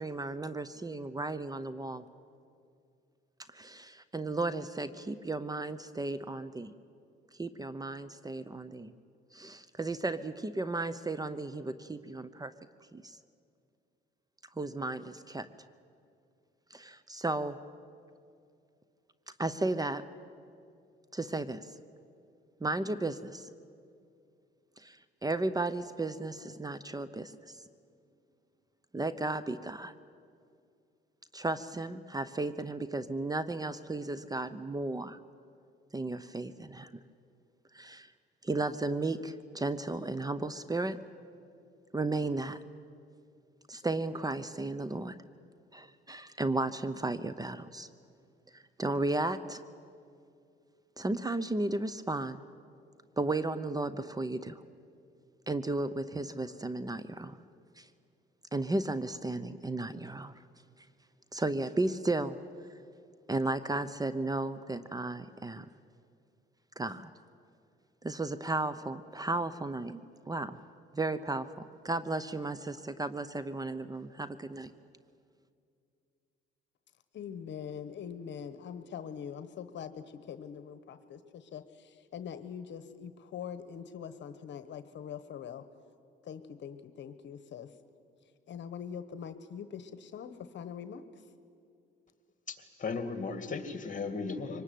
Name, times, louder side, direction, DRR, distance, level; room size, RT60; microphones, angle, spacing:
voice 1, 0.0-2.0 3.5-6.7 7.4-8.9 9.3-12.5 12.9-13.2 14.6-15.5 16.7-17.6 19.4-20.1 21.1-21.7 22.6-23.5 24.8-27.6 28.9-29.9 31.3-35.2 35.9-37.0 37.7-38.1 38.4-41.0 41.9-42.6 43.7-45.2 45.7-47.9 48.5-49.6 51.0-52.4 53.2-54.6 55.5-57.4 57.8-57.9 58.5-60.4 61.3-62.4 63.3-65.7 66.8-67.1 68.0-70.0 70.3-70.6 70.9-74.7, right 2 dB, 20° right, 14 dB, 0.8 m, -34 dB
voice 2, 77.1-85.6 86.2-87.7 88.5-91.0, left 8 dB, 65° left, 11 dB, 1.1 m, -43 dB
voice 3, 92.5-94.6, left 4 dB, 40° left, 9 dB, 2.4 m, -36 dB
24.0 x 19.5 x 9.3 m, 2.4 s
cardioid pair, 90°, 20 cm